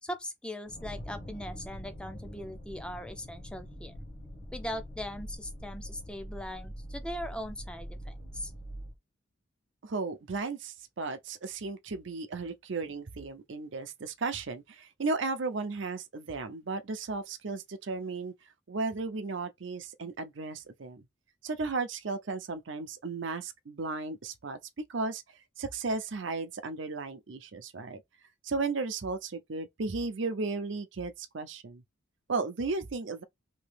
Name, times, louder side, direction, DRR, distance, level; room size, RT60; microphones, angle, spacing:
voice 1, 0.0-4.0 4.5-8.5, left 1 dB, 5° left, 0.5 m, -40 dB
sound 1, 0.7-8.9, equal, 45° left, 1.2 m, -44 dB
voice 2, 9.8-18.3 18.7-21.1 21.4-24.6 24.9-25.2 25.6-28.0 28.4-31.8 32.3-33.2, right 3 dB, 65° right, 0.6 m, -35 dB
3.0 x 2.8 x 3.3 m
head